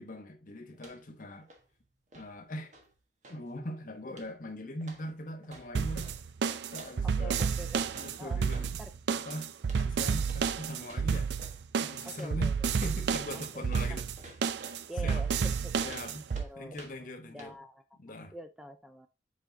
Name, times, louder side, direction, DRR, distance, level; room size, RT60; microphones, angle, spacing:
voice 1, 0.0-1.5 2.1-2.7 3.3-6.1 6.4-7.4 7.9-8.8 9.2-11.3 11.8-12.5 12.8-14.1 15.0-15.2 15.8-16.3 16.6-17.6 18.0-18.3, left 1 dB, 50° left, 1.3 m, -41 dB
sound 1, 0.7-1.2 1.4-3.5 4.1-4.5 4.8-6.2 6.7-8.7 9.6-9.9 10.2-10.5 10.8-11.6 12.2-14.8 15.4-17.1 17.4-17.5, right 1 dB, 40° right, 1.4 m, -52 dB
sound 2, 5.7-16.4, right 6 dB, 70° right, 0.4 m, -31 dB
voice 2, 7.0-7.9 8.2-8.4 8.8-8.9 12.0-12.7 13.3-13.6 14.9-15.7 16.4-18.0 18.3-19.1, equal, 5° right, 0.4 m, -46 dB
7.2 x 5.1 x 2.7 m
head